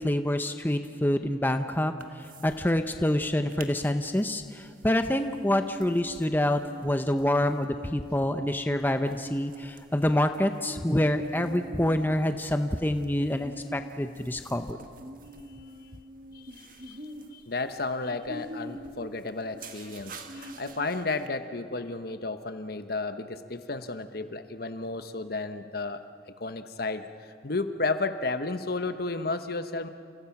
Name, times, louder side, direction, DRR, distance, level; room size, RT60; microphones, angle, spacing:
voice 1, 0.0-1.9 2.4-14.8, left 1 dB, 10° left, 8 dB, 0.7 m, -27 dB
sound 1, 2.0-2.6 2.9-3.0 3.3-3.7 4.1-21.3, right 1 dB, 45° right, 1.8 m, -44 dB
voice 2, 17.3-26.0 26.4-27.0 27.4-29.9, left 3 dB, 55° left, 9 dB, 1.1 m, -32 dB
30.0 x 28.5 x 6.0 m, 2.3 s
head